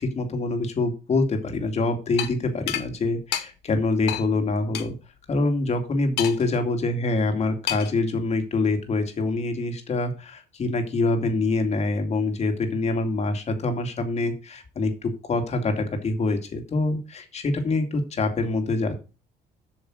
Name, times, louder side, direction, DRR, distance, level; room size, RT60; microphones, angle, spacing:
voice 1, 0.0-4.9 5.3-19.0, left 3 dB, 40° left, 5 dB, 2.5 m, -25 dB
sound 1, 2.2-2.3 2.7-2.9 3.3-3.5 4.1-4.2 4.7-4.9 6.2-6.6 7.7-8.0, left 11 dB, 75° left, 1.4 m, -28 dB
7.9 x 6.5 x 6.4 m, 0.31 s
cardioid pair, 110°, 17 cm